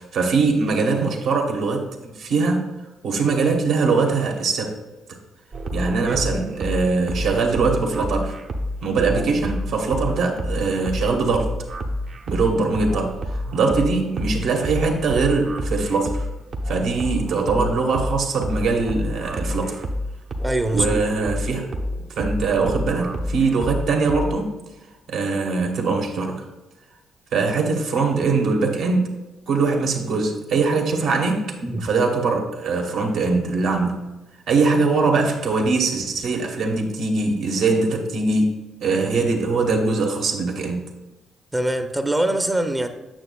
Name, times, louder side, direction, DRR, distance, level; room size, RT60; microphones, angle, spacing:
voice 1, 0.0-2.7 3.0-4.7 5.7-8.3 8.8-11.5 12.3-16.3 16.6-19.8 20.7-21.7 22.1-24.5 25.1-26.4 27.3-29.1 29.5-31.5 31.8-34.1 34.5-38.5 38.8-40.9, right 4 dB, 75° right, 2 dB, 1.1 m, -22 dB
sound 1, 5.5-24.3, equal, 55° right, 0.8 m, -29 dB
voice 2, 6.1-6.4 20.4-21.0 31.6-31.9 41.5-42.9, right 1 dB, 15° right, 7 dB, 0.5 m, -23 dB
8.8 x 6.5 x 2.3 m, 1.1 s
cardioid pair, 90°, 0 cm